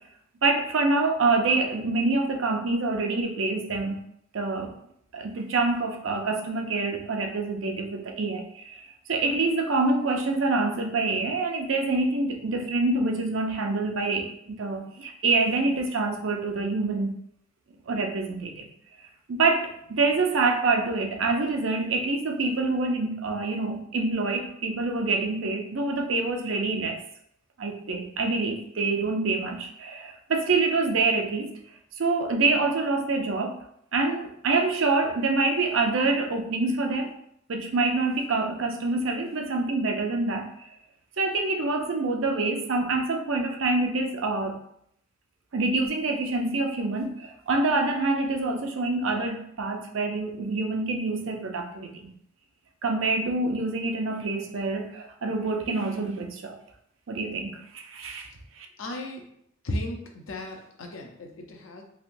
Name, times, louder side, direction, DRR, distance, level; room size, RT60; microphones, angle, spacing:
voice 1, 0.4-4.0 4.3-4.7 5.1-17.1 17.9-18.7 19.3-27.0 27.6-31.5 32.0-33.6 33.9-37.1 37.5-40.7 41.2-44.6 45.5-52.1 52.8-56.6 57.1-58.3 58.5-58.7, right 3 dB, 70° right, 3 dB, 0.5 m, -26 dB
voice 2, 58.8-59.2 59.6-61.8, left 1 dB, 80° left, 2 dB, 0.6 m, -35 dB
3.2 x 2.8 x 2.6 m, 0.72 s
head